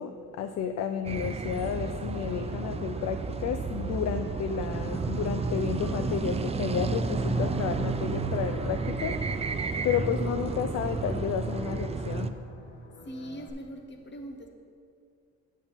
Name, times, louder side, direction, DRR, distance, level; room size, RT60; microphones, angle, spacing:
voice 1, 0.0-9.3 9.8-12.3, left 8 dB, 60° left, 8 dB, 0.5 m, -32 dB
sound 1, 1.0-12.3, right 4 dB, 20° right, 0.4 m, -31 dB
sound 2, 2.2-13.5, left 2 dB, 85° left, 1.1 m, -47 dB
voice 2, 13.0-14.5, right 1 dB, 35° left, 4 dB, 1.2 m, -41 dB
8.5 x 7.2 x 3.5 m, 2.4 s
cardioid pair, 90°, 30 cm